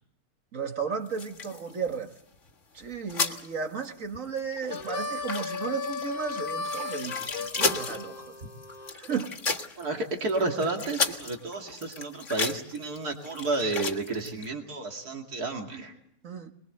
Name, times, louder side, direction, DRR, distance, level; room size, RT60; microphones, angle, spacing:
voice 1, 0.5-2.1 2.7-8.4 8.9-9.3 16.2-16.5, right 6 dB, 60° right, 2.0 m, -34 dB
sound 1, 1.1-2.5 2.8-3.5 3.8-3.9 4.2-14.5, left 4 dB, 55° left, 2.0 m, -34 dB
Harmonica, 4.7-8.9, left 4 dB, 70° left, 1.8 m, -35 dB
voice 2, 9.8-15.9, right 3 dB, 85° right, 2.9 m, -31 dB
23.0 x 22.0 x 7.9 m
omnidirectional pair, 1.6 m